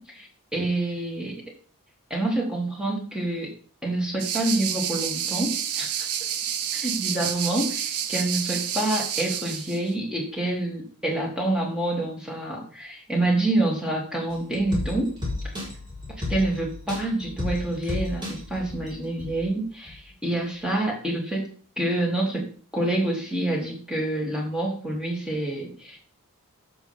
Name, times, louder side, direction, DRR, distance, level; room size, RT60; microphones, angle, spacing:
voice 1, 0.0-1.4 2.1-3.5 3.8-6.1 6.7-15.1 15.4-15.5 16.3-21.5 21.8-26.0, right 1 dB, 5° right, -2 dB, 2.7 m, -27 dB
sound 1, 4.2-9.8, right 9 dB, 85° right, 0.9 m, -29 dB
sound 2, 14.3-19.5 19.9-20.0, left 2 dB, 20° right, 4.2 m, -33 dB
10.5 x 7.3 x 3.6 m, 0.43 s
head